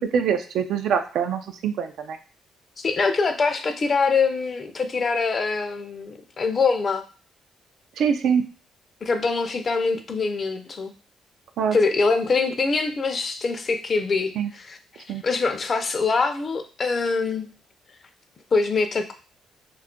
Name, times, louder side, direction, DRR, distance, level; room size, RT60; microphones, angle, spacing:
voice 1, 0.1-2.2 8.0-8.4 11.6-11.8 14.4-14.5 15.1-15.2, right 7 dB, 75° right, 7 dB, 0.4 m, -24 dB
voice 2, 2.8-7.0 9.0-10.9 11.7-17.5 18.5-19.1, left 4 dB, 35° left, 7 dB, 0.4 m, -24 dB
2.6 x 2.3 x 3.6 m, 0.36 s
cardioid pair, 125°, 0 cm